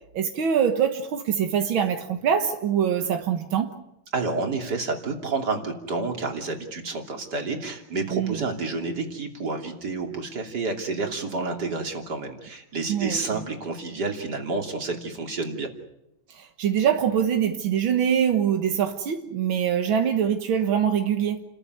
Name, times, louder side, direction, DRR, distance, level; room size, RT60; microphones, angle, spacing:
voice 1, 0.1-3.8 8.1-8.4 12.9-13.4 16.3-21.4, right 8 dB, 90° right, 2.2 m, -24 dB
voice 2, 4.1-15.7, right 3 dB, 55° right, 3.5 m, -29 dB
30.0 x 14.0 x 9.5 m
omnidirectional pair, 2.1 m